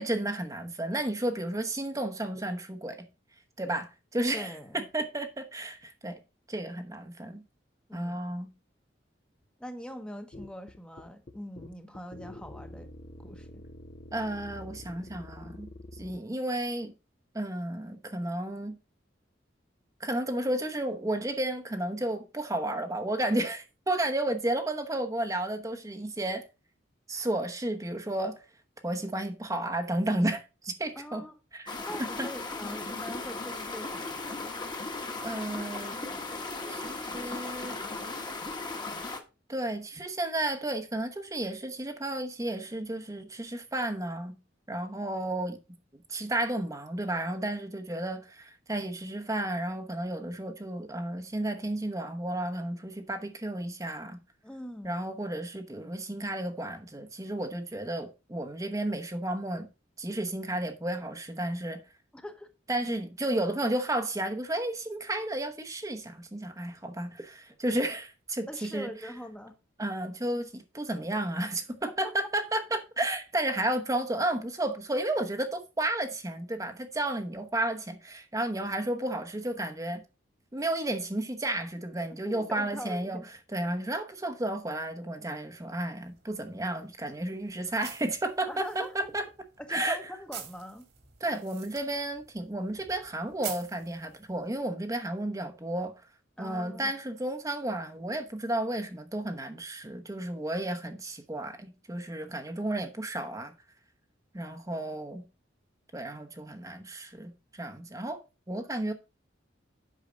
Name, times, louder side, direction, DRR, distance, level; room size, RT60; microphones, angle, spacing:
voice 1, 0.0-3.0 3.6-6.2 6.5-7.4 7.9-8.5 14.1-15.7 16.0-16.9 17.3-18.8 20.0-26.5 27.1-28.4 28.8-31.2 31.5-32.3 35.2-36.0 36.7-37.8 39.5-44.4 44.7-45.6 46.1-54.2 54.8-59.7 60.0-61.8 62.7-68.9 69.8-80.0 80.5-83.2 83.5-89.2 89.7-90.0 91.2-95.9 96.4-103.5 104.3-105.2 105.9-108.2 108.5-108.9, right 1 dB, 20° right, 0.9 m, -32 dB
voice 2, 4.3-4.9 7.9-8.2 9.6-12.9 13.2-13.6 31.0-31.3 31.8-34.5 54.4-55.0 62.1-62.5 68.5-69.5 82.2-83.3 88.4-89.1 89.6-90.9 96.4-96.9, equal, 5° left, 1.0 m, -42 dB
sound 1, 10.3-16.2, left 1 dB, 40° left, 0.7 m, -47 dB
sound 2, 31.7-39.2, left 3 dB, 25° left, 1.3 m, -37 dB
sound 3, 86.0-94.6, right 9 dB, 60° right, 2.0 m, -48 dB
8.3 x 5.7 x 5.0 m
head